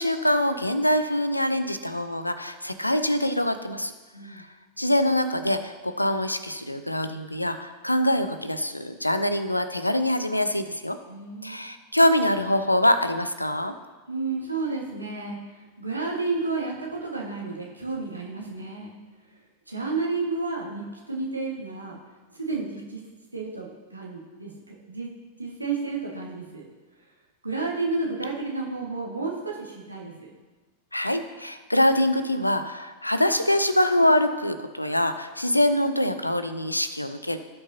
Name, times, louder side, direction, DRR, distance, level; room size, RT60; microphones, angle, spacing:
voice 1, 0.0-3.9 4.3-4.5 4.8-11.0 11.4-13.7 30.9-37.4, left 1 dB, 85° left, 10 dB, 0.5 m, -24 dB
voice 2, 4.1-4.4 11.1-11.6 14.1-18.9 19.7-22.0 22.3-23.0 23.3-25.1 25.4-26.6 27.4-30.3, right 3 dB, 85° right, -2 dB, 1.7 m, -31 dB
16.5 x 5.5 x 2.8 m, 1.3 s
figure-of-eight pair, 90°, 0 cm